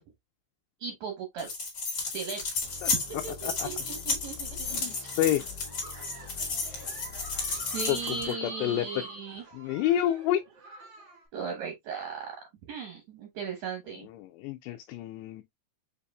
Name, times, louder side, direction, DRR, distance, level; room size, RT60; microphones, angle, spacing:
voice 1, 0.8-1.5 2.1-2.4 2.9-5.2 7.7-9.4 11.3-12.3 12.7-14.1, right 5 dB, 80° right, 1.6 m, -37 dB
sound 1, 1.4-8.3, left 3 dB, 50° left, 1.2 m, -33 dB
sound 2, 2.6-8.3, left 6 dB, 65° left, 2.1 m, -47 dB
Giggle, 4.6-11.3, right 3 dB, 65° right, 1.1 m, -49 dB
voice 2, 4.7-5.4 7.9-8.9 9.5-10.4 14.1-15.4, left 12 dB, 85° left, 2.6 m, -29 dB
7.4 x 2.7 x 2.3 m
omnidirectional pair, 4.9 m